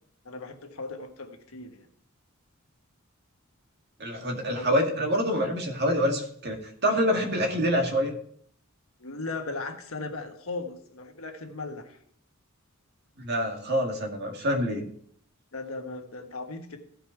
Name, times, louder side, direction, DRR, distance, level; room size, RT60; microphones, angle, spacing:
voice 1, 0.2-1.9 4.2-4.8 9.0-12.0 15.5-16.8, left 3 dB, 85° left, 5 dB, 1.4 m, -37 dB
voice 2, 4.0-8.1 13.2-14.8, equal, 55° right, 2 dB, 2.0 m, -26 dB
15.0 x 5.4 x 4.6 m, 0.62 s
head